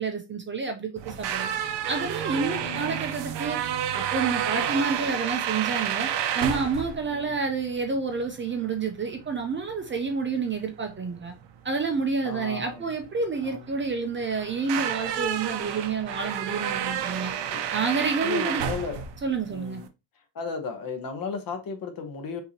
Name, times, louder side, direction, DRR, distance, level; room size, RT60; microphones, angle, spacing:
voice 1, 0.0-1.5 1.9-6.1 6.3-11.3 11.6-17.3 17.7-18.7 19.2-19.8, right 4 dB, 25° right, 0.6 m, -29 dB
sound 1, 1.0-19.9, right 9 dB, 60° right, 0.7 m, -31 dB
voice 2, 2.4-3.0 7.0-7.3 12.2-12.9 13.4-13.6 17.2-17.7 18.2-19.0 19.4-19.9 20.3-22.4, left 5 dB, 45° left, 1.1 m, -35 dB
5.6 x 2.9 x 2.8 m
cardioid pair, 150°, 48 cm